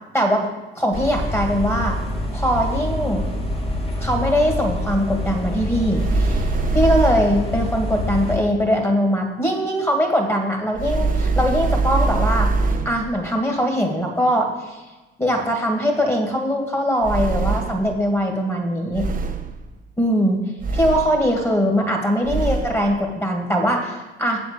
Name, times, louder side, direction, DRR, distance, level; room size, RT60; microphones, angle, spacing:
voice 1, 0.1-0.5 0.8-2.0 2.3-3.2 4.0-6.5 6.7-12.5 12.9-14.8 15.2-19.1 20.0-20.4 20.7-24.4, equal, 10° left, 2 dB, 1.9 m, -21 dB
sound 1, 0.9-8.4, left 1 dB, 30° left, 1.8 m, -26 dB
sound 2, 5.9-7.4 10.8-13.1 17.0-17.9 18.9-19.6 20.6-21.3 22.2-22.8, right 3 dB, 45° right, 0.7 m, -22 dB
8.0 x 4.4 x 7.2 m, 1.1 s
cardioid pair, 90°, 20 cm